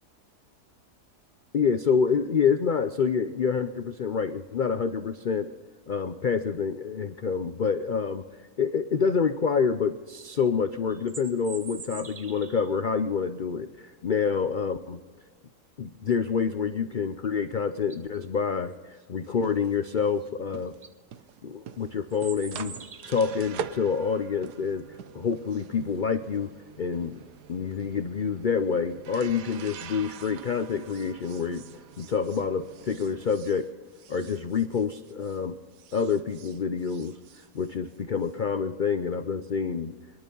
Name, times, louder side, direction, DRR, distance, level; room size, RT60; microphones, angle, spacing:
voice 1, 1.5-5.5 5.9-8.2 8.6-15.0 15.8-20.7 21.4-22.8 23.1-24.8 25.1-26.5 26.8-27.2 27.5-33.7 34.1-35.5 35.9-37.2 37.5-39.9, left 6 dB, 85° left, 10 dB, 0.4 m, -27 dB
sound 1, 10.9-12.7 17.2-17.3 17.7-18.2 20.2-20.3 20.7-20.9 22.1-23.5, right 5 dB, 40° right, 0.7 m, -44 dB
sound 2, 19.2-35.4 35.7-38.3, right 8 dB, 85° right, 1.4 m, -45 dB
24.0 x 11.0 x 5.4 m, 1.5 s
omnidirectional pair, 1.7 m